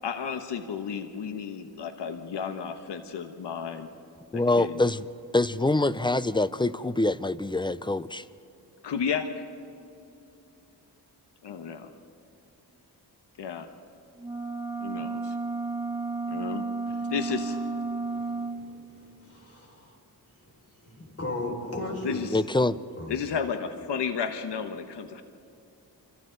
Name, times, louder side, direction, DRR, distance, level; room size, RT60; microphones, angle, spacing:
voice 1, 0.0-3.9 4.3-4.8 8.8-9.4 11.4-11.9 13.4-13.7 14.8-15.4 16.3-16.6 17.1-17.6 22.0-22.4 23.1-25.2, left 6 dB, 85° left, 1.2 m, -32 dB
voice 2, 4.3-5.1 5.3-8.2 22.3-22.8, left 2 dB, 10° left, 0.5 m, -25 dB
sound 1, 14.2-18.6, right 3 dB, 10° right, 1.7 m, -32 dB
voice 3, 18.1-20.0 20.9-22.2 23.0-23.1, left 2 dB, 35° left, 5.4 m, -37 dB
28.5 x 24.5 x 4.0 m
cardioid pair, 85°, 41 cm